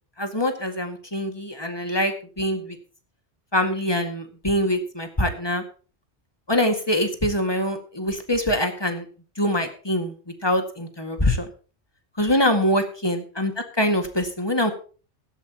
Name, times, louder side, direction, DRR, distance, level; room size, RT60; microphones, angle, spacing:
voice 1, 0.2-2.8 3.5-5.6 6.5-9.1 9.4-10.1 10.4-11.5 12.2-14.7, left 1 dB, 20° left, 6 dB, 1.9 m, -24 dB
16.5 x 13.0 x 2.9 m, 0.37 s
omnidirectional pair, 1.1 m